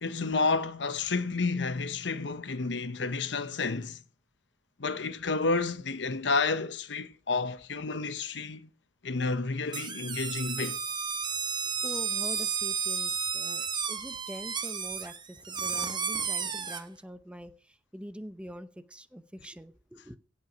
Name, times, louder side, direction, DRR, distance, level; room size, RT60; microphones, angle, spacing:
voice 1, 0.0-4.0 4.8-8.7 9.0-10.8, left 4 dB, 70° left, 0.9 m, -30 dB
sound 1, 9.7-16.8, right 6 dB, 25° right, 1.0 m, -32 dB
voice 2, 11.8-20.2, equal, 5° right, 0.7 m, -44 dB
16.5 x 5.7 x 6.1 m
head